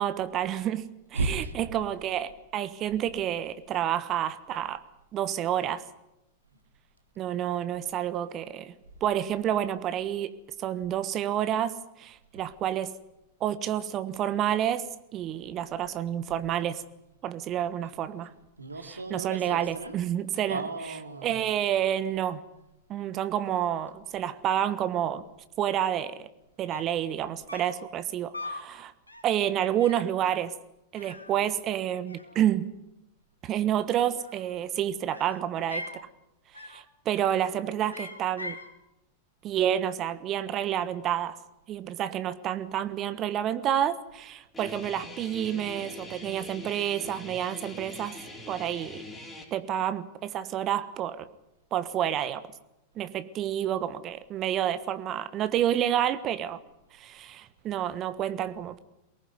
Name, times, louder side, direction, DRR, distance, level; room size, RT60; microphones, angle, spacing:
voice 1, 0.0-4.8 5.1-5.8 7.2-8.7 9.0-10.3 10.6-12.9 13.4-16.8 17.2-18.3 19.1-20.6 21.2-22.4 22.9-25.2 25.6-26.3 26.6-28.9 29.2-30.5 30.9-32.7 33.4-35.9 36.6-38.6 39.4-41.4 41.7-48.2 48.5-49.0 49.5-51.3 51.7-52.5 53.0-56.6 56.9-58.8, right 10 dB, 35° right, 13 dB, 1.3 m, -29 dB
voice 2, 1.1-1.6 18.6-20.0 20.5-21.4, right 3 dB, 80° right, 6 dB, 2.5 m, -34 dB
sound 1, 26.4-26.5 26.7-27.0 27.5-27.9 28.3-28.7 29.1-29.4 29.8-30.1 30.9-32.8 34.0-34.6 35.1-36.0 36.5-36.9 37.2-37.5 37.9-38.7, left 2 dB, 80° left, 2.5 m, -42 dB
Guitar, 44.5-49.5, left 1 dB, 10° left, 5.9 m, -43 dB
23.0 x 19.0 x 9.5 m, 0.89 s
figure-of-eight pair, 90°, 0 cm